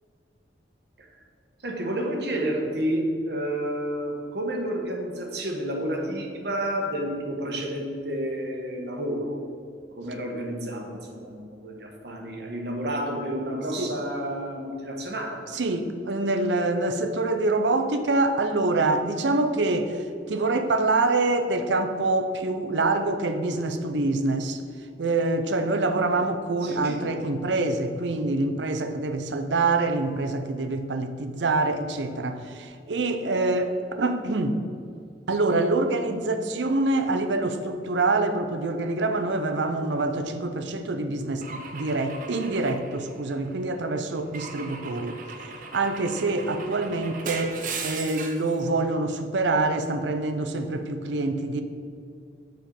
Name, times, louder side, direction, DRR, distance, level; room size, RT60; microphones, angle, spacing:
voice 1, 1.6-9.4 10.0-15.6 26.6-27.1, right 1 dB, 70° right, 1 dB, 1.2 m, -30 dB
voice 2, 15.5-24.6 25.0-34.6 35.3-51.6, right 2 dB, 85° right, 8 dB, 0.6 m, -26 dB
Car / Engine / Glass, 41.4-43.6 44.3-48.5, right 4 dB, 45° right, 0.6 m, -38 dB
7.2 x 4.6 x 5.3 m, 2.4 s
head